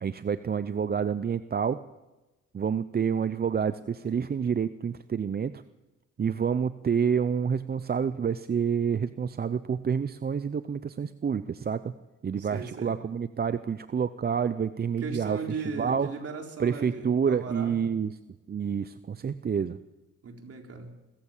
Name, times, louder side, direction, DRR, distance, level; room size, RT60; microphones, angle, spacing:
voice 1, 0.0-1.8 2.5-5.6 6.2-11.9 12.2-15.4 15.8-16.1 16.6-18.2 18.5-19.8, right 7 dB, 30° right, 13 dB, 0.7 m, -28 dB
voice 2, 12.4-13.0 15.0-17.8 20.2-20.9, right 4 dB, 50° right, 3 dB, 4.2 m, -37 dB
24.0 x 15.0 x 7.4 m, 1.1 s
cardioid pair, 90°, 30 cm